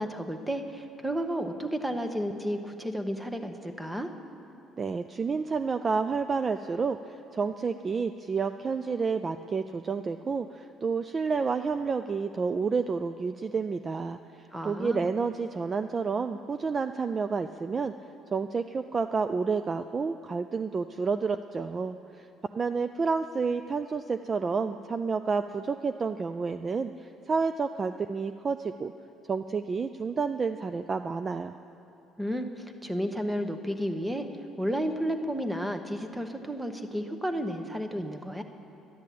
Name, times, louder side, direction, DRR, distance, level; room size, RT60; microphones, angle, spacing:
voice 1, 0.0-4.1 14.5-15.1 32.2-34.3 34.6-38.4, equal, 10° right, 7 dB, 1.0 m, -32 dB
voice 2, 4.8-14.2 14.6-17.9 18.3-22.3 22.5-28.9 29.3-31.5, right 5 dB, 35° right, 9 dB, 0.4 m, -30 dB
11.5 x 10.5 x 8.4 m, 2.8 s
cardioid pair, 100°, 0 cm